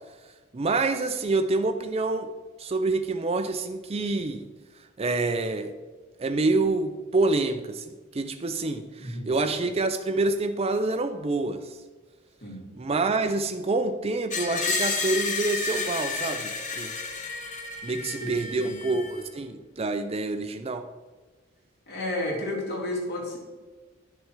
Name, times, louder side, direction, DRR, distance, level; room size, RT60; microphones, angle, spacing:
voice 1, 0.5-2.3 2.6-4.5 5.0-5.7 6.2-11.8 12.8-16.9 17.8-20.8, right 3 dB, 30° right, 8 dB, 0.5 m, -27 dB
voice 2, 9.0-9.3 12.4-12.6 17.9-18.9 21.9-23.4, left 1 dB, 55° left, -2 dB, 2.7 m, -32 dB
Screech, 14.3-19.3, left 4 dB, 40° left, 1.0 m, -31 dB
11.0 x 6.4 x 4.6 m, 1.4 s
head